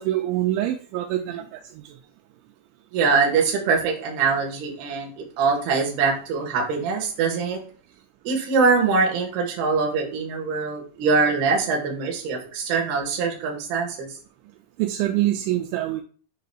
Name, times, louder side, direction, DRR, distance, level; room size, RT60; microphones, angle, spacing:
voice 1, 0.0-2.0 14.8-16.0, right 14 dB, 85° right, 5 dB, 2.8 m, -25 dB
voice 2, 2.9-7.6 8.2-14.2, right 4 dB, 65° right, 0 dB, 3.1 m, -23 dB
9.4 x 4.9 x 2.3 m, 0.41 s
omnidirectional pair, 5.3 m